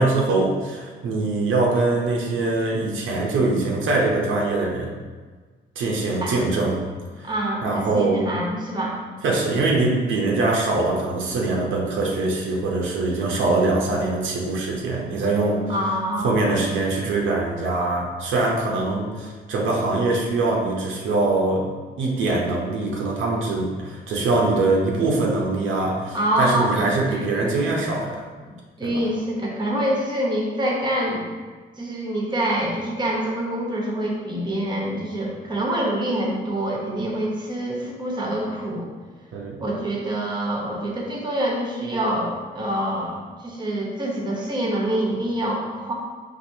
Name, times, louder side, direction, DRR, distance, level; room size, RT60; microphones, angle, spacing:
voice 1, 0.0-5.0 5.8-6.9 7.2-7.3 7.6-8.2 9.2-15.7 16.2-21.7 22.0-28.2 28.8-29.0 39.3-39.6, right 2 dB, 80° right, -2 dB, 0.7 m, -23 dB
voice 2, 6.2-6.6 7.2-9.0 15.7-16.5 26.1-27.7 28.5-31.3 31.8-38.9 39.6-45.9, right 1 dB, 20° right, -2 dB, 0.9 m, -26 dB
4.2 x 2.6 x 2.7 m, 1.4 s
cardioid pair, 90°, 20 cm